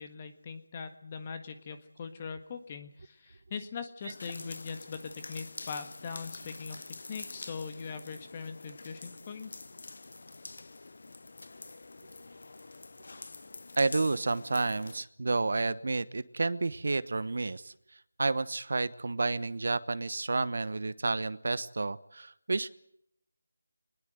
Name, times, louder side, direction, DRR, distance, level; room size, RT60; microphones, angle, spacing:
voice 1, 0.0-9.5, left 5 dB, 25° left, 8 dB, 1.6 m, -41 dB
sound 1, 4.0-15.0, left 3 dB, 60° left, 0.8 m, -46 dB
voice 2, 13.8-22.7, right 3 dB, 60° right, 15 dB, 1.1 m, -31 dB
24.0 x 20.5 x 8.0 m, 0.74 s
figure-of-eight pair, 170°, 0 cm